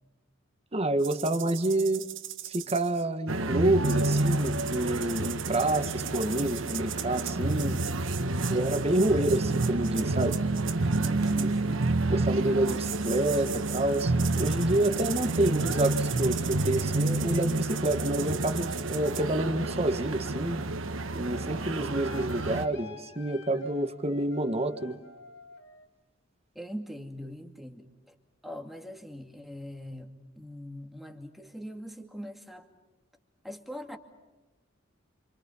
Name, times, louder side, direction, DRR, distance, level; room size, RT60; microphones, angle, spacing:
voice 1, 0.7-2.1 2.4-7.8 8.5-10.4 11.4-11.5 12.1-20.7 21.1-25.0, right 1 dB, 30° right, 9 dB, 1.6 m, -28 dB
sound 1, 1.0-3.0 3.8-11.5 12.6-19.2, right 12 dB, 70° right, 1.6 m, -40 dB
sound 2, 3.3-22.7, right 2 dB, 90° right, 1.4 m, -29 dB
voice 2, 8.4-9.0 10.8-11.9 12.4-12.5 26.5-28.1 28.4-32.7 33.4-34.0, equal, ahead, 4 dB, 2.4 m, -42 dB
sound 3, 19.7-25.9, left 5 dB, 70° left, 4.4 m, -51 dB
29.0 x 27.0 x 5.7 m, 1.2 s
head